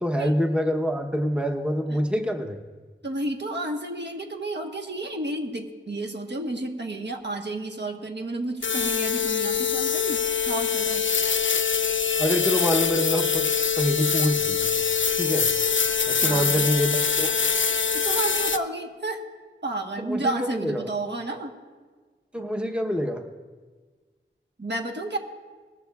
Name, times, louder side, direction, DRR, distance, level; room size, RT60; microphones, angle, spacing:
voice 1, 0.0-2.6 12.2-13.5 13.8-14.7 15.1-15.5 16.1-17.3 20.0-20.9 22.3-23.3, equal, 5° right, 3 dB, 0.8 m, -26 dB
voice 2, 3.0-11.1 16.2-16.7 17.9-19.2 19.6-21.5 24.6-25.2, right 2 dB, 60° right, 2 dB, 1.2 m, -31 dB
sound 1, 8.6-18.6, left 6 dB, 70° left, 0.5 m, -24 dB
19.5 x 13.5 x 2.3 m, 1.4 s
wide cardioid pair, 50°, 21 cm